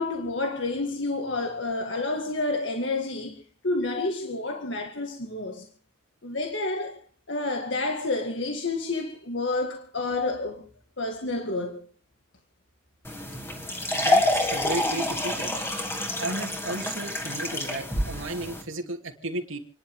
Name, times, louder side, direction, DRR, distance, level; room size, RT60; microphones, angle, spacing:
voice 1, 0.0-5.7 6.2-7.0 7.3-10.7 11.0-11.9, left 2 dB, 65° left, 1.9 m, -29 dB
sound 1, 13.0-18.6, left 1 dB, 10° left, 2.5 m, -27 dB
voice 2, 14.0-15.5 16.2-19.6, right 2 dB, 80° right, 2.9 m, -34 dB
30.0 x 11.0 x 3.7 m
head